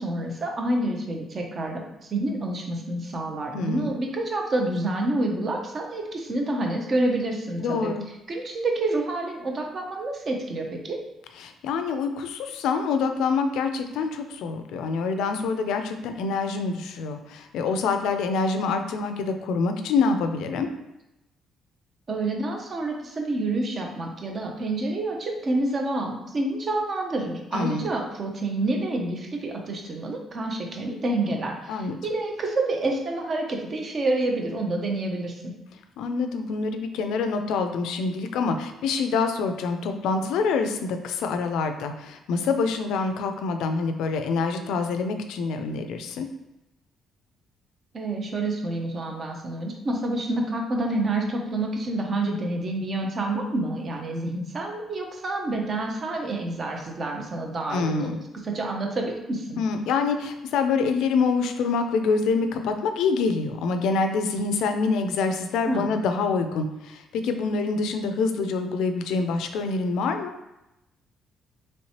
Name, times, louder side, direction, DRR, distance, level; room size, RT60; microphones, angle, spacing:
voice 1, 0.0-7.9 8.3-11.0 22.1-35.5 47.9-58.1 58.4-59.6 65.7-66.0, right 2 dB, 40° right, 2 dB, 0.6 m, -28 dB
voice 2, 3.5-3.9 7.6-8.0 11.4-20.7 27.5-27.9 31.7-32.0 36.0-46.3 57.7-58.2 59.6-70.3, left 4 dB, 85° left, 7 dB, 0.3 m, -26 dB
3.1 x 3.0 x 2.8 m, 0.92 s
cardioid pair, 120°, 0 cm